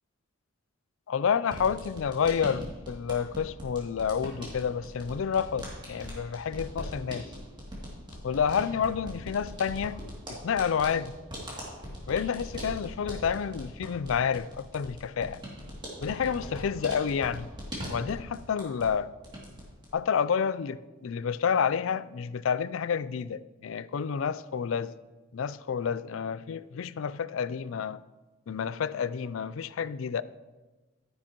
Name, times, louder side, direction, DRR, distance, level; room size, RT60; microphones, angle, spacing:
voice 1, 1.1-7.3 8.2-10.0 10.3-11.1 12.1-15.4 16.0-17.5 17.9-19.1 19.9-24.9 25.3-28.0 28.5-30.2, left 7 dB, 70° left, 16 dB, 0.4 m, -29 dB
sound 1, 1.4-19.0 19.2-19.9, equal, 25° right, 2.7 m, -41 dB
12.0 x 10.0 x 3.0 m, 1.2 s
head